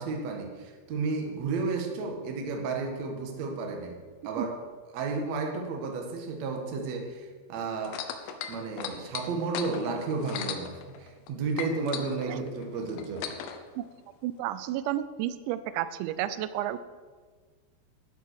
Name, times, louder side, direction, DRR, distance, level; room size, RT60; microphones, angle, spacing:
voice 1, 0.0-4.0 4.2-4.5 4.9-8.0 8.5-13.3, right 4 dB, 50° right, 2 dB, 2.3 m, -32 dB
sound 1, 7.8-11.3 11.6-13.6 14.4-14.5, left 9 dB, 90° left, 3.3 m, -37 dB
voice 2, 14.2-16.8, right 13 dB, 90° right, 14 dB, 3.0 m, -31 dB
11.5 x 9.6 x 6.9 m, 1.5 s
omnidirectional pair, 5.1 m